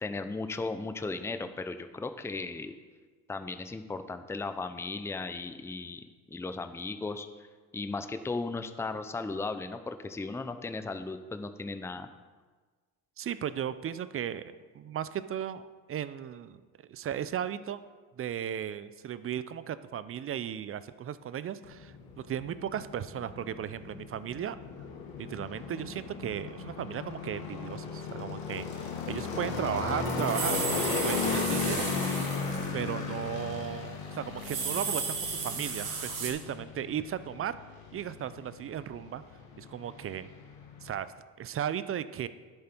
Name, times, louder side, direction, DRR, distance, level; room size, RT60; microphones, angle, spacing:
voice 1, 0.0-2.8 3.3-6.0 6.3-7.3 7.7-12.1, left 3 dB, 5° left, 10 dB, 0.6 m, -36 dB
voice 2, 13.2-15.6 15.9-16.6 16.9-17.8 18.2-24.6 25.2-30.6 31.0-31.9 32.7-37.6 37.9-39.2 39.6-40.3 40.8-41.1 41.4-42.3, right 9 dB, 35° right, 14 dB, 0.5 m, -36 dB
sound 1, 21.7-41.0, left 5 dB, 70° left, 2.0 m, -36 dB
sound 2, 29.2-29.3 29.5-32.8 33.1-33.3 34.2-36.3, right 5 dB, 55° right, 3.0 m, -34 dB
10.5 x 7.9 x 4.5 m, 1.4 s
supercardioid pair, 85°, 38 cm